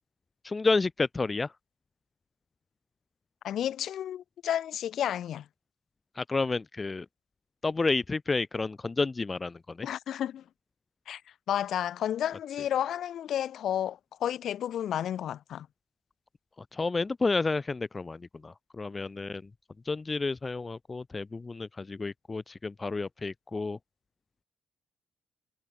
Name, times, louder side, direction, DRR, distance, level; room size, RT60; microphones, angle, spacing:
voice 1, 0.4-1.5 6.2-7.1 7.6-9.9 16.7-19.4 19.9-23.8, left 3 dB, 25° left, 0.4 m, -30 dB
voice 2, 3.4-5.4 9.8-10.4 11.1-11.2 11.5-15.7, left 10 dB, 70° left, 1.2 m, -31 dB
cardioid pair, 90°, 0 cm